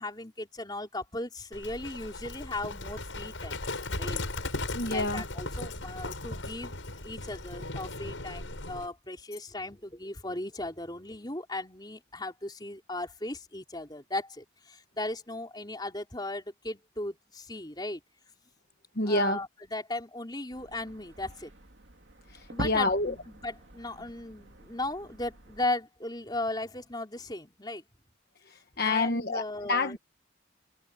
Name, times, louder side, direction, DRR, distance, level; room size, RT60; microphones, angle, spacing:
voice 1, 0.0-4.2 4.8-18.0 19.0-21.5 22.5-27.9 28.8-30.0, left 2 dB, 20° left, 4.2 m, -37 dB
Livestock farm animals working animals, 1.5-8.9, left 2 dB, 75° left, 6.3 m, -37 dB
voice 2, 4.7-5.2 19.0-19.4 22.3-23.1 28.5-29.4 29.7-30.0, left 2 dB, 50° left, 1.1 m, -28 dB
sound 1, 20.5-25.7, right 1 dB, 65° right, 2.6 m, -44 dB
head